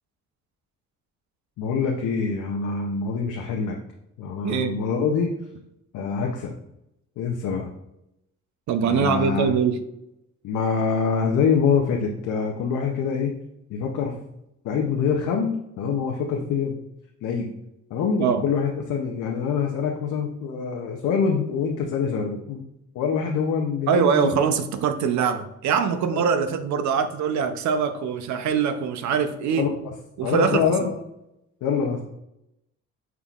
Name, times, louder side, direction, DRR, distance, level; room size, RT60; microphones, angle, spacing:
voice 1, 1.6-3.7 4.2-5.3 5.9-6.5 7.2-7.7 8.8-9.6 10.4-13.3 13.7-14.2 14.6-16.8 17.2-17.5 17.9-22.6 22.9-24.4 26.1-26.2 29.5-29.9 30.2-31.0 31.6-32.0, left 6 dB, 80° left, 1 dB, 0.6 m, -25 dB
voice 2, 4.4-4.8 8.7-9.8 18.2-18.4 23.9-29.7 30.2-30.9, right 6 dB, 70° right, 9 dB, 0.6 m, -23 dB
5.7 x 3.6 x 2.4 m, 0.84 s
cardioid pair, 90°, 30 cm